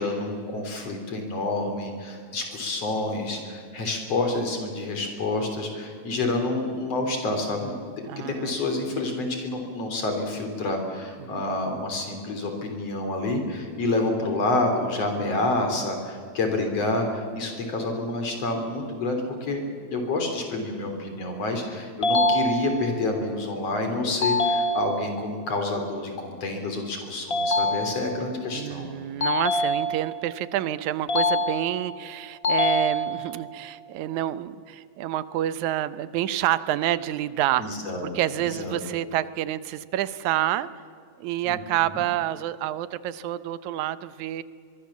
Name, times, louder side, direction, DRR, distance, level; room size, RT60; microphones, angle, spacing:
voice 1, 0.0-7.8 8.3-28.9 37.6-38.1 38.4-38.8 41.4-41.6 41.9-42.0, left 2 dB, 60° left, 4 dB, 4.3 m, -28 dB
voice 2, 8.1-8.7 11.2-11.3 28.5-37.6 38.0-40.7 41.2-44.4, right 12 dB, 90° right, 15 dB, 2.2 m, -28 dB
sound 1, 22.0-23.0 24.2-25.2 27.3-28.3 29.2-30.3 31.1-32.0 32.4-33.4, left 1 dB, 80° left, 0.5 m, -25 dB
23.5 x 23.0 x 7.3 m, 2.2 s
omnidirectional pair, 3.3 m